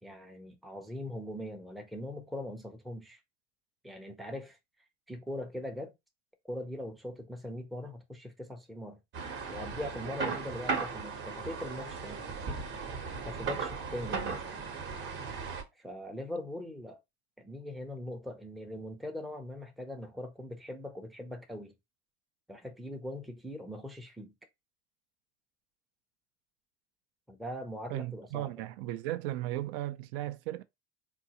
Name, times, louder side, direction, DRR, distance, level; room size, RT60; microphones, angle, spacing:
voice 1, 0.0-3.2 3.8-4.6 5.1-5.9 6.4-9.0 9.5-12.3 13.2-14.5 15.7-17.0 17.4-21.7 22.5-24.3 27.3-28.5, left 1 dB, ahead, 0.4 m, -41 dB
sound 1, 9.1-15.6, right 5 dB, 40° right, 0.8 m, -37 dB
voice 2, 27.9-30.6, right 15 dB, 75° right, 0.5 m, -36 dB
3.8 x 2.4 x 2.8 m
cardioid pair, 145°, 29 cm